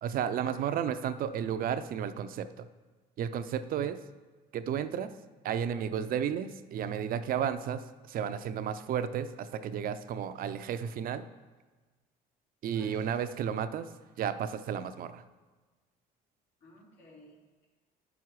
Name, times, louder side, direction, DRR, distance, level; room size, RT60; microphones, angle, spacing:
voice 1, 0.0-2.7 3.2-4.0 4.5-5.1 5.4-11.3 12.6-13.9 14.2-15.2, right 8 dB, 60° right, 11 dB, 0.5 m, -33 dB
voice 2, 12.7-13.1 16.6-17.7, left 2 dB, 80° left, -4 dB, 3.0 m, -55 dB
9.0 x 6.1 x 4.7 m, 1.3 s
cardioid pair, 110°, 17 cm